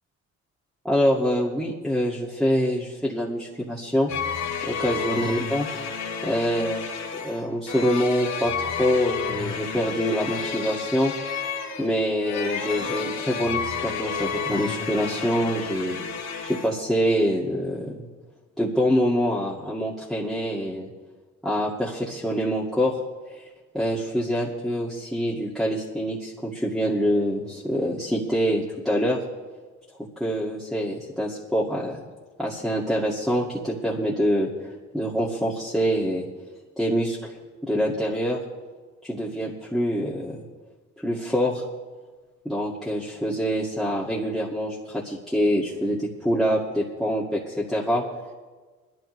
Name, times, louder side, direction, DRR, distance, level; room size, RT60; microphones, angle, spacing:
voice 1, 0.8-4.1 4.6-5.7 6.2-6.8 7.2-11.1 11.8-16.0 16.4-18.1 18.6-20.9 21.4-23.0 23.3-23.5 23.7-29.2 30.2-32.0 32.4-36.3 36.8-37.3 37.6-38.4 39.0-40.4 41.0-41.6 42.4-48.0, equal, ahead, -5 dB, 2.2 m, -25 dB
sound 1, 4.1-16.7, left 6 dB, 65° left, 2.4 m, -31 dB
21.0 x 12.5 x 3.3 m, 1.3 s
cardioid pair, 90°, 30 cm